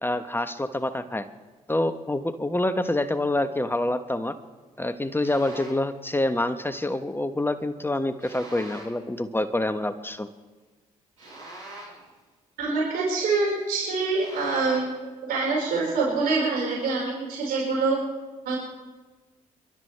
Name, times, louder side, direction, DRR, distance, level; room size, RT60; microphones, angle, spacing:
voice 1, 0.0-1.3 1.7-4.4 4.8-10.3, left 1 dB, 15° left, 10 dB, 1.2 m, -27 dB
sound 1, 5.2-5.9 8.2-9.0 11.2-12.1 14.1-15.0, right 1 dB, 90° right, 7.2 m, -43 dB
voice 2, 12.6-18.0 18.4-18.6, right 3 dB, 60° right, -4 dB, 5.2 m, -25 dB
29.5 x 12.5 x 3.4 m, 1.3 s
figure-of-eight pair, 40°, 17 cm